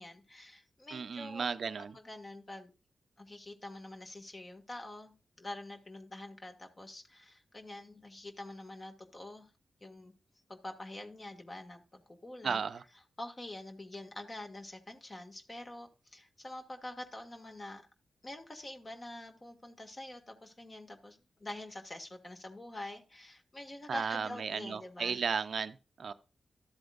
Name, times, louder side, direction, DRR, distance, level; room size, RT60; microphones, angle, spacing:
voice 1, 0.0-2.7 3.2-9.5 9.8-10.1 10.5-12.6 13.2-17.9 18.2-25.2, left 1 dB, 35° left, 1.8 m, -46 dB
voice 2, 0.9-1.9 12.4-12.8 23.9-26.1, right 6 dB, 70° right, 0.5 m, -35 dB
13.0 x 7.8 x 2.4 m
cardioid pair, 50°, 0 cm